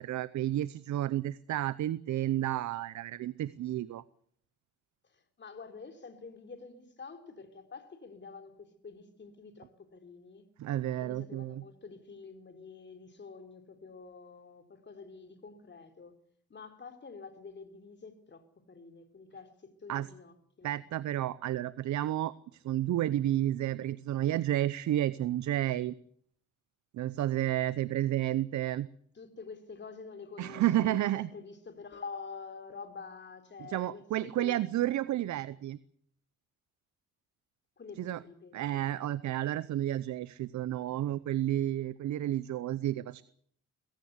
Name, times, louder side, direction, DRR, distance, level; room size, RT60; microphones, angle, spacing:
voice 1, 0.0-4.0 10.6-11.6 19.9-20.1 20.6-25.9 26.9-28.9 30.4-31.3 33.6-35.8 38.0-38.2 38.5-43.2, right 13 dB, 70° right, 0.8 m, -31 dB
voice 2, 5.0-10.5 11.0-16.1 16.5-20.8 29.2-34.6 37.8-38.9, left 5 dB, 35° left, 3.7 m, -48 dB
22.0 x 17.0 x 8.1 m
cardioid pair, 90°, 30 cm